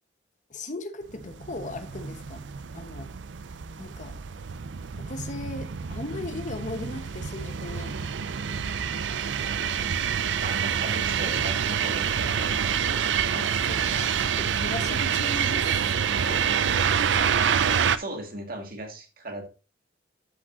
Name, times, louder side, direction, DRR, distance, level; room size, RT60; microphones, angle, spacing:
voice 1, 0.5-2.4 2.7-3.1 3.8-4.2 5.0-7.9 13.3-16.5, left 2 dB, 45° left, 1.1 m, -38 dB
sound 1, 1.2-18.0, right 7 dB, 90° right, 0.5 m, -27 dB
voice 2, 10.4-12.8 17.9-19.5, right 1 dB, 55° right, 1.9 m, -38 dB
12.5 x 6.0 x 2.6 m
head